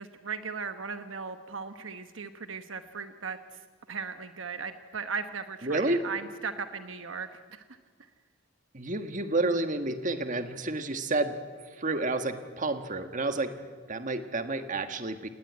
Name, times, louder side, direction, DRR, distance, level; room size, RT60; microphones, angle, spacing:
voice 1, 0.0-3.6 3.9-7.6, right 5 dB, 70° right, 8 dB, 1.1 m, -37 dB
voice 2, 5.6-6.0 8.7-11.4 11.8-13.5 13.9-15.3, right 2 dB, 40° right, 8 dB, 1.6 m, -30 dB
28.5 x 18.5 x 9.6 m, 1.5 s
head